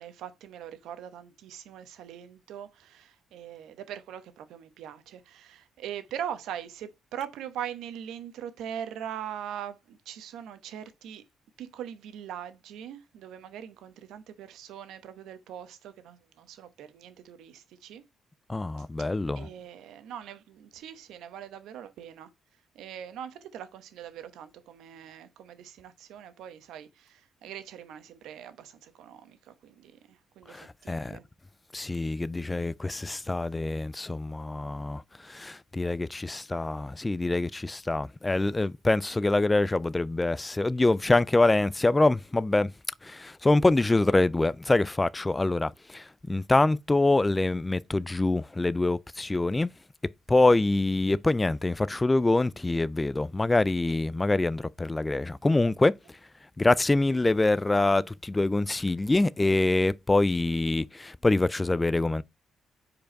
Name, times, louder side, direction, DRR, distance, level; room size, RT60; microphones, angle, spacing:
voice 1, 0.0-11.2 11.6-18.0 19.4-22.3 22.7-31.2, right 9 dB, 85° right, 0.9 m, -41 dB
voice 2, 18.5-19.5 30.5-31.2 31.7-42.7 43.0-49.7 50.3-56.0 56.6-62.2, left 2 dB, 15° left, 0.3 m, -25 dB
5.1 x 4.6 x 4.4 m
cardioid pair, 90°, 0 cm